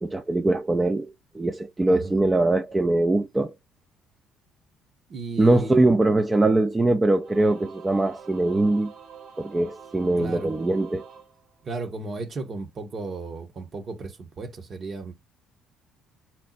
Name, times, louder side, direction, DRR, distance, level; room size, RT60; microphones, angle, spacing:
voice 1, 0.0-3.5 5.4-8.9 9.4-11.0, right 2 dB, 20° right, 0.5 m, -22 dB
voice 2, 1.9-2.2 5.1-5.8 10.2-10.6 11.6-15.1, right 3 dB, 45° right, 1.1 m, -35 dB
Singing / Musical instrument, 7.2-12.0, right 6 dB, 65° right, 1.6 m, -46 dB
4.3 x 2.0 x 4.0 m
hypercardioid pair, 60°, 0 cm